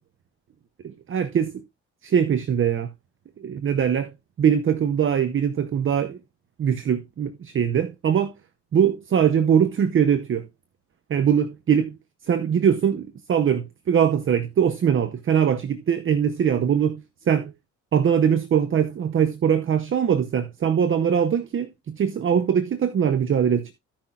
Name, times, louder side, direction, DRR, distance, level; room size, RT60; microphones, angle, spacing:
voice 1, 0.8-1.6 2.0-2.9 3.4-4.1 4.4-6.2 6.6-8.3 8.7-10.5 11.1-12.0 12.3-17.5 17.9-23.7, right 8 dB, 45° right, 0.7 m, -22 dB
14.5 x 5.8 x 2.4 m
cardioid pair, 90°, 30 cm